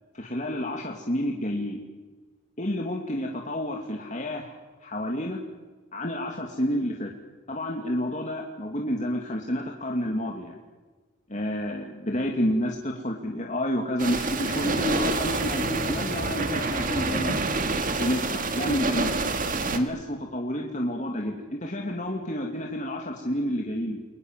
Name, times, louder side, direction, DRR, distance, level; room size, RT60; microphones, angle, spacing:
voice 1, 0.1-1.8 2.6-4.6 4.8-5.4 5.9-7.1 7.5-10.6 11.3-17.4 17.8-19.1 19.7-24.0, equal, 35° left, 0 dB, 2.6 m, -29 dB
sound 1, 14.0-19.8, right 3 dB, 40° right, 2.2 m, -27 dB
30.0 x 23.0 x 7.5 m, 1.3 s
head